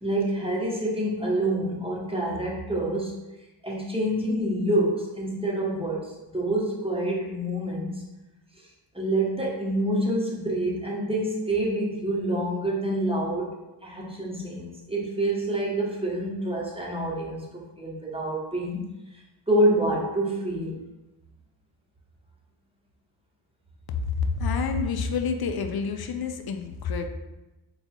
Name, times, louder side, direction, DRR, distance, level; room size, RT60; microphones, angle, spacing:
voice 1, 0.0-3.2 3.6-8.0 8.9-13.6 13.8-18.9 19.5-20.8, right 1 dB, 10° right, -4 dB, 1.0 m, -27 dB
voice 2, 24.2-27.1, left 5 dB, 50° left, 5 dB, 0.5 m, -28 dB
3.4 x 2.3 x 4.2 m, 1.0 s
cardioid pair, 60°, 47 cm